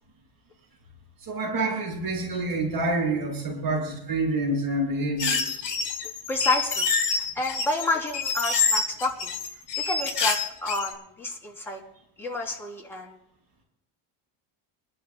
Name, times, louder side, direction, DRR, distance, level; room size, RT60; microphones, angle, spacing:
voice 1, 1.2-5.7, right 2 dB, 55° right, -1 dB, 6.5 m, -27 dB
sound 1, 5.2-10.9, left 5 dB, 45° left, 3.9 m, -27 dB
voice 2, 6.3-9.4 9.8-11.8 12.2-13.1, left 2 dB, 5° left, -3 dB, 3.2 m, -30 dB
29.0 x 12.0 x 2.3 m, 0.77 s
cardioid pair, 140°, 43 cm